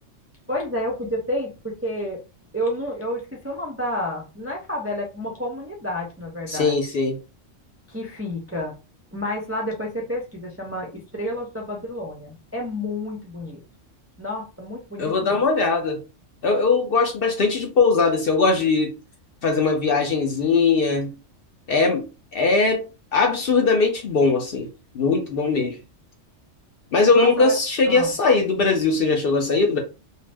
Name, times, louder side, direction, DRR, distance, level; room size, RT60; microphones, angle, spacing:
voice 1, 0.5-2.2 2.5-6.7 7.9-8.7 9.1-13.6 14.2-15.4 27.1-27.5 27.9-28.1, left 1 dB, 20° right, 0.4 m, -30 dB
voice 2, 6.5-7.2 15.0-16.0 16.4-18.9 19.4-21.1 21.7-22.0 22.3-22.9 23.1-24.7 24.9-25.8 26.9-29.8, left 4 dB, 60° left, 0.7 m, -20 dB
2.6 x 2.1 x 3.3 m
omnidirectional pair, 1.3 m